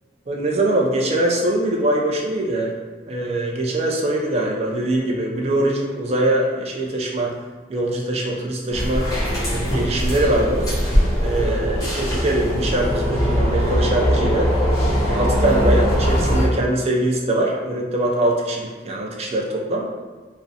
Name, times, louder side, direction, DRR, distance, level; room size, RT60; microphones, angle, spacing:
voice 1, 0.3-2.7 3.1-7.4 7.7-9.1 9.5-10.8 11.2-14.5 15.0-19.9, right 1 dB, 35° right, -1 dB, 0.3 m, -22 dB
sound 1, 8.7-16.5, equal, 20° left, 0.7 m, -21 dB
2.4 x 2.0 x 2.6 m, 1.3 s
head